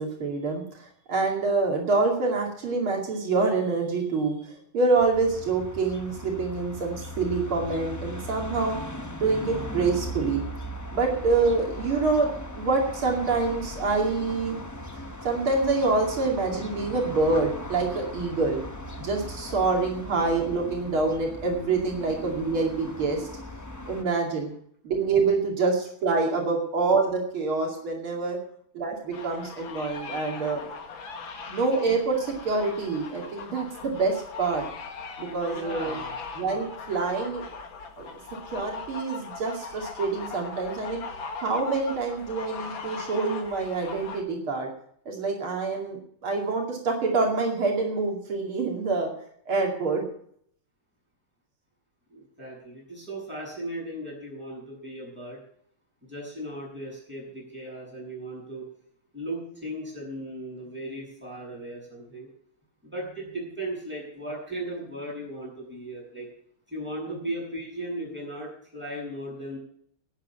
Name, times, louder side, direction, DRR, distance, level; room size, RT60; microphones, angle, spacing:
voice 1, 0.0-8.8 9.2-10.4 10.9-14.6 15.2-18.6 19.0-23.3 23.9-24.5 24.8-28.4 28.7-30.6 31.5-34.6 35.2-35.9 36.4-37.4 38.0-38.1 38.5-41.0 41.4-44.7 45.1-49.1 49.5-50.0 67.1-67.2, right 3 dB, 85° right, 0 dB, 3.4 m, -26 dB
sound 1, 5.0-24.0, left 1 dB, 25° left, 0.4 m, -38 dB
sound 2, 29.1-44.2, left 5 dB, 70° left, 2.4 m, -39 dB
voice 2, 35.4-36.1 52.1-55.4 56.0-58.7 59.1-62.3 62.8-66.3 66.7-69.6, right 1 dB, 5° right, -4 dB, 7.6 m, -37 dB
11.5 x 9.3 x 9.0 m, 0.66 s
omnidirectional pair, 2.2 m